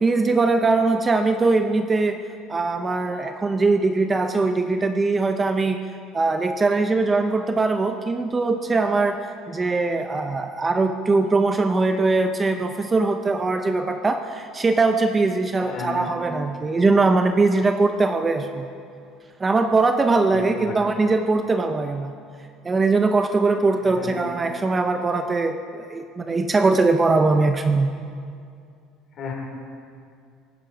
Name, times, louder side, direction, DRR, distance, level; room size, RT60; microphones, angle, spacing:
voice 1, 0.0-2.2 2.5-5.8 6.1-18.7 19.4-22.1 22.6-27.9, right 3 dB, 20° right, 6 dB, 0.7 m, -21 dB
voice 2, 15.6-16.0 20.3-20.8 23.8-24.1 29.2-29.3, left 4 dB, 45° left, -1 dB, 4.6 m, -33 dB
18.5 x 15.5 x 5.0 m, 2.3 s
cardioid pair, 140°, 0 cm